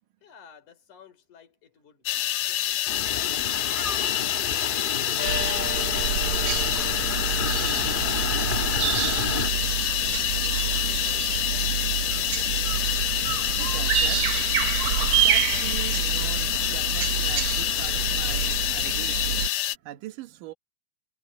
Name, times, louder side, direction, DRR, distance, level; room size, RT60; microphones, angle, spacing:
voice 1, 0.2-4.0 4.3-6.7 7.1-11.9, left 9 dB, 65° left, 5.1 m, -53 dB
sound 1, 2.1-19.8, left 13 dB, 85° left, 1.4 m, -27 dB
sound 2, 2.9-9.5, left 3 dB, 30° left, 0.9 m, -32 dB
sound 3, 5.2-19.5, right 10 dB, 65° right, 2.0 m, -28 dB
voice 2, 12.3-20.5, right 14 dB, 80° right, 2.8 m, -42 dB
omnidirectional pair, 3.7 m